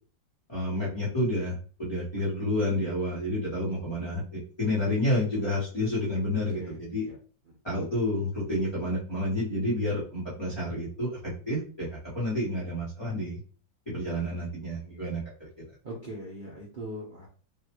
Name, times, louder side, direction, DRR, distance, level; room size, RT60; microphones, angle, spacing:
voice 1, 0.5-7.0 7.6-13.4 13.9-15.5, left 1 dB, 20° left, -9 dB, 1.0 m, -30 dB
voice 2, 6.3-7.1 7.4-7.6 15.8-17.3, right 1 dB, 70° right, -5 dB, 0.4 m, -41 dB
4.0 x 2.3 x 3.0 m, 0.40 s
omnidirectional pair, 2.1 m